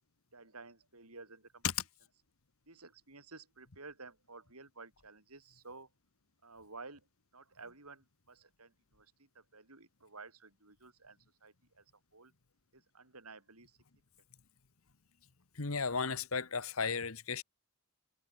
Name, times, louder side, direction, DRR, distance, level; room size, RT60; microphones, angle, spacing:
voice 1, 0.3-1.6 2.7-5.9 6.4-7.1 7.3-11.8 12.1-12.3 12.7-13.8, right 3 dB, 90° right, 7.2 m, -53 dB
voice 2, 15.5-17.4, left 5 dB, 70° left, 1.4 m, -34 dB
head